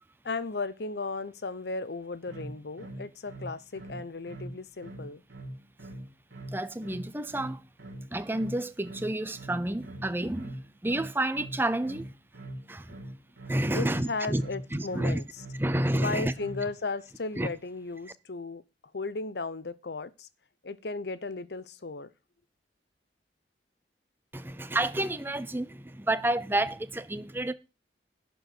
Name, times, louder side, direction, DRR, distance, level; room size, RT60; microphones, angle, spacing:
voice 1, 0.2-5.2 13.7-15.3 16.0-18.6 18.9-20.3 20.6-22.1, left 3 dB, 70° left, 0.8 m, -35 dB
sound 1, 2.3-16.7, right 1 dB, 90° right, 2.5 m, -42 dB
voice 2, 6.5-7.6 8.1-12.1 12.7-13.0 13.5-14.4 14.7-15.2 15.6-16.3 17.4-17.5 24.3-27.5, right 1 dB, 10° right, 0.6 m, -30 dB
11.5 x 4.7 x 7.9 m
head